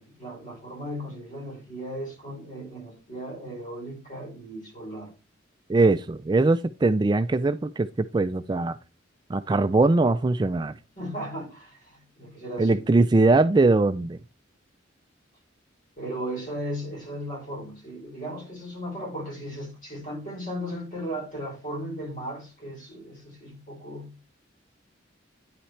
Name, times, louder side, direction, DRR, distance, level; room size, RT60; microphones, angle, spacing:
voice 1, 0.0-5.1 11.0-12.8 16.0-24.1, equal, 40° left, 5.0 m, -36 dB
voice 2, 5.7-8.8 9.3-10.8 12.6-14.2, right 3 dB, 20° right, 0.3 m, -21 dB
9.7 x 5.8 x 3.2 m
head